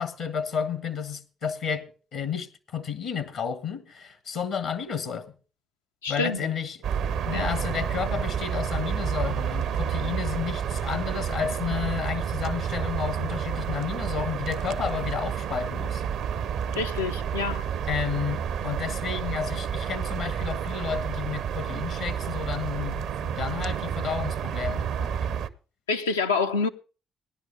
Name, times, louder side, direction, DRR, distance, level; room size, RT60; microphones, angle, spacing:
voice 1, 0.0-5.3 6.1-6.8 7.2-16.0 17.9-25.4, left 7 dB, 70° left, 1.2 m, -32 dB
voice 2, 6.0-6.5 7.3-7.5 16.7-17.7 25.9-26.7, left 4 dB, 90° left, 0.6 m, -27 dB
sound 1, 6.8-25.5, right 8 dB, 70° right, 0.7 m, -30 dB
17.0 x 11.0 x 3.4 m
hypercardioid pair, 45°, 0 cm